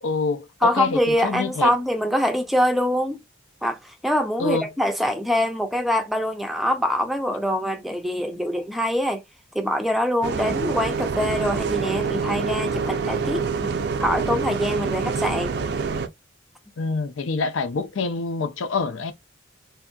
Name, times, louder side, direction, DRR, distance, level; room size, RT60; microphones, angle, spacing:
voice 1, 0.0-1.7 4.4-4.6 16.8-19.1, left 3 dB, 90° left, 0.5 m, -26 dB
voice 2, 0.6-3.2 3.6-9.2 9.5-13.7 14.0-15.7, equal, ahead, 0.5 m, -24 dB
Bus, 10.2-16.1, right 5 dB, 55° right, 0.4 m, -26 dB
3.4 x 2.7 x 2.3 m
head